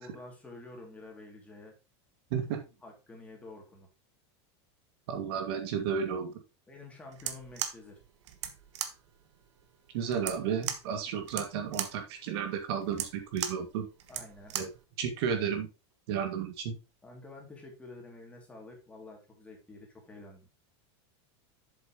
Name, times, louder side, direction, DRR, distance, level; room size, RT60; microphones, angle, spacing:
voice 1, 0.0-1.8 2.8-3.9 6.7-8.0 14.1-14.6 17.0-20.5, left 2 dB, 10° left, 0 dB, 2.6 m, -49 dB
voice 2, 2.3-2.6 5.1-6.3 9.9-13.9 14.5-14.7 15.0-15.7 16.1-16.8, right 7 dB, 65° right, 6 dB, 2.1 m, -32 dB
sound 1, 7.1-14.8, right 10 dB, 85° right, 1.3 m, -39 dB
7.8 x 7.4 x 3.0 m, 0.29 s
supercardioid pair, 155°, 15 cm